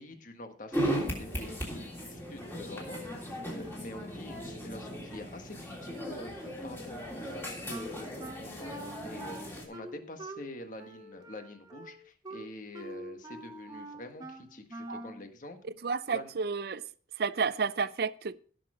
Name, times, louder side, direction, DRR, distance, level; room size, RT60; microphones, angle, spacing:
voice 1, 0.0-15.6 16.1-16.3, left 1 dB, 45° left, 1.5 m, -46 dB
sound 1, 0.7-9.6, equal, 10° left, 3.2 m, -37 dB
Wind instrument woodwind instrument, 7.7-15.2, right 2 dB, 20° right, 1.4 m, -45 dB
voice 2, 15.8-16.8 17.2-18.4, right 5 dB, 55° right, 0.5 m, -31 dB
16.0 x 6.6 x 4.9 m
head